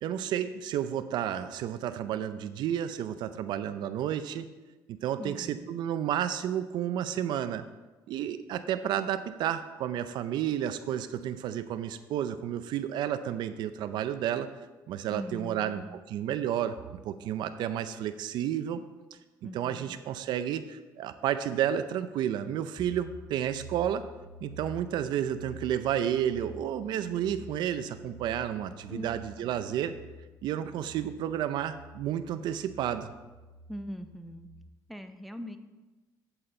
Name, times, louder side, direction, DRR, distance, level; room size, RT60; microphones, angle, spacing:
voice 1, 0.0-4.5 4.9-7.6 8.1-14.5 14.9-15.8 16.1-18.8 19.4-24.0 24.4-29.9 30.4-33.1, right 10 dB, 80° right, 12 dB, 0.5 m, -31 dB
voice 2, 5.2-5.7 15.1-16.0 19.4-20.0 28.9-29.6 33.7-34.5 34.9-35.6, equal, ahead, 7 dB, 0.7 m, -42 dB
sound 1, 22.8-34.6, equal, 20° left, 2.6 m, -49 dB
8.9 x 8.7 x 3.8 m, 1.2 s
cardioid pair, 120°, 8 cm